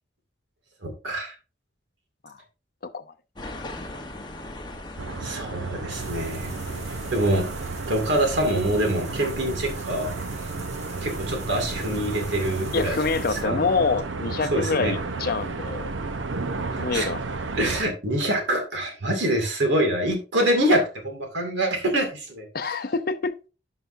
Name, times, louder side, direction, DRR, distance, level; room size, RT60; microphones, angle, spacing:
voice 1, 0.8-1.3 5.2-6.5 7.1-7.5 7.9-10.1 11.0-13.6 14.5-15.0 16.9-17.1 17.6-22.5, right 1 dB, 65° right, 2.3 m, -25 dB
sound 1, 3.4-8.3, left 1 dB, 25° left, 1.1 m, -40 dB
sound 2, 5.0-17.8, right 3 dB, 80° right, 0.8 m, -33 dB
sound 3, 5.9-13.4, right 2 dB, 35° right, 1.6 m, -39 dB
voice 2, 12.7-15.9 16.7-17.2 22.5-23.4, left 4 dB, 50° left, 0.6 m, -26 dB
11.5 x 5.6 x 2.6 m
head